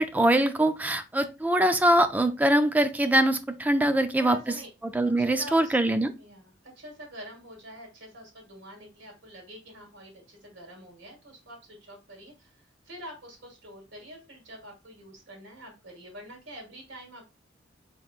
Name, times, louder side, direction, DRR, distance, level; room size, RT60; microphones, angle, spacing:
voice 1, 0.0-4.5 4.8-6.1, right 1 dB, 10° right, 0.4 m, -23 dB
voice 2, 3.8-4.7 5.2-5.8 6.2-17.3, equal, 75° right, 2.0 m, -46 dB
4.5 x 3.6 x 2.4 m
head